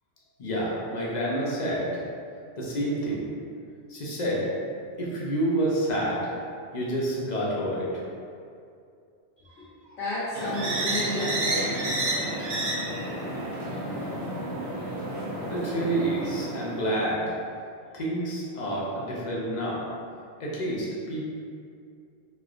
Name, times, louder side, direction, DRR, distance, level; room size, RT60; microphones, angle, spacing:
voice 1, 0.4-2.0 2.6-3.3 3.9-4.5 5.0-6.3 6.7-8.0 15.5-17.3 17.9-19.8 20.4-21.2, right 1 dB, 50° left, -5 dB, 0.6 m, -28 dB
voice 2, 9.4-11.9, left 1 dB, 75° left, -9 dB, 1.0 m, -32 dB
sound 1, 10.3-17.1, right 1 dB, 65° right, 0.9 m, -30 dB
3.1 x 2.8 x 2.4 m, 2.4 s
omnidirectional pair, 1.2 m